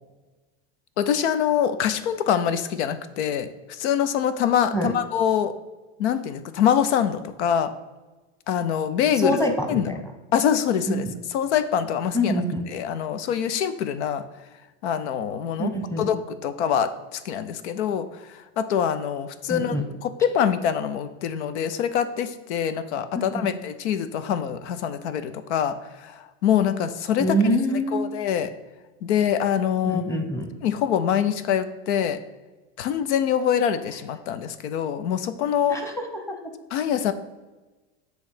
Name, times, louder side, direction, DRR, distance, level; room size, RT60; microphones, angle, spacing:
voice 1, 1.0-5.5 6.0-7.7 8.5-9.4 9.7-9.9 10.3-11.0 11.3-12.3 12.7-14.2 14.8-15.7 16.0-18.1 18.6-19.7 20.0-25.8 26.0-27.4 27.9-28.5 29.0-30.0 30.6-32.2 32.8-35.8 36.7-37.1, left 9 dB, 80° left, 12 dB, 0.7 m, -24 dB
voice 2, 9.2-10.0 10.9-11.1 12.1-12.6 15.6-16.1 19.5-19.8 23.1-23.5 27.2-28.1 29.8-30.5 35.7-35.9 36.3-36.4, equal, 10° left, 4 dB, 1.1 m, -25 dB
7.9 x 3.1 x 5.0 m, 1.2 s
supercardioid pair, 115°, 34 cm